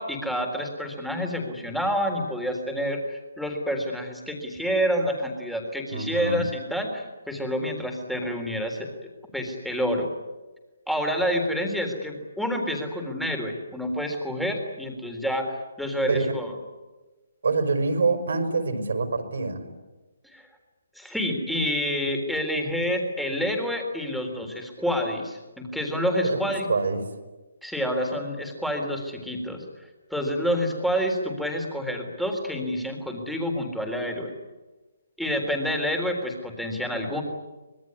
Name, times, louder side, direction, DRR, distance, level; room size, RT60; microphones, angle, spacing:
voice 1, 0.0-8.9 9.3-10.1 10.9-16.5 20.3-20.5 21.0-26.7 27.6-29.6 30.1-34.3 35.2-37.2, equal, ahead, 2 dB, 3.8 m, -28 dB
voice 2, 5.9-6.5 16.1-16.3 17.4-19.6 26.2-27.1, right 4 dB, 75° right, 6 dB, 5.2 m, -25 dB
25.0 x 21.5 x 9.7 m, 1.2 s
hypercardioid pair, 160°, 0 cm